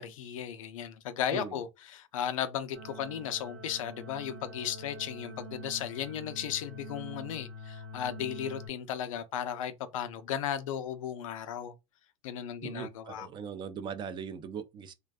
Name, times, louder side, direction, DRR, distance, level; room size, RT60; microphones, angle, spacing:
voice 1, 0.0-11.7 12.2-13.3, left 9 dB, 90° left, 0.4 m, -35 dB
voice 2, 1.3-1.6 12.6-14.9, right 7 dB, 30° right, 0.3 m, -40 dB
sound 1, 2.7-8.7, equal, 85° right, 1.2 m, -45 dB
2.5 x 2.2 x 2.3 m
supercardioid pair, 115°, 17 cm